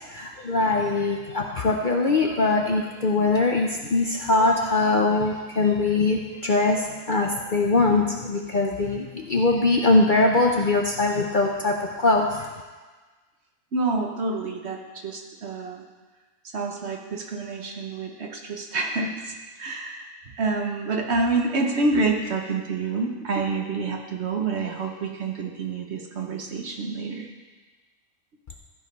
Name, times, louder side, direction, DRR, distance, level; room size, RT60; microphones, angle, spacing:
voice 1, 0.1-12.5, left 3 dB, 45° left, 1 dB, 0.7 m, -22 dB
voice 2, 13.7-15.8 16.5-19.3 19.6-20.1 20.4-27.3, right 3 dB, 55° right, 2 dB, 1.2 m, -27 dB
14.0 x 4.8 x 5.4 m, 1.3 s
omnidirectional pair, 1.5 m